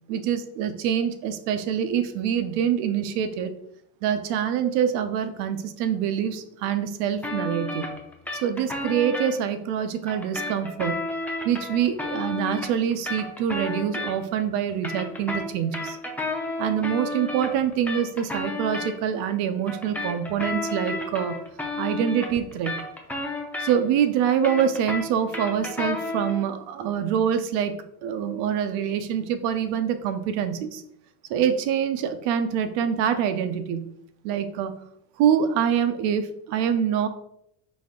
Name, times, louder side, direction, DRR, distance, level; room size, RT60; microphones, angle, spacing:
voice 1, 0.1-3.5 4.0-7.9 8.4-11.0 11.4-16.0 16.6-21.4 21.8-22.8 23.6-27.8 28.0-30.8 31.3-33.9 34.2-34.7 35.2-37.1, right 8 dB, 75° right, 9 dB, 0.6 m, -25 dB
sound 1, 7.2-9.3 10.1-14.4 14.7-18.9 19.7-24.0 24.3-26.4, left 2 dB, 5° left, 0.5 m, -32 dB
4.1 x 2.7 x 3.6 m, 0.75 s
cardioid pair, 125°, 42 cm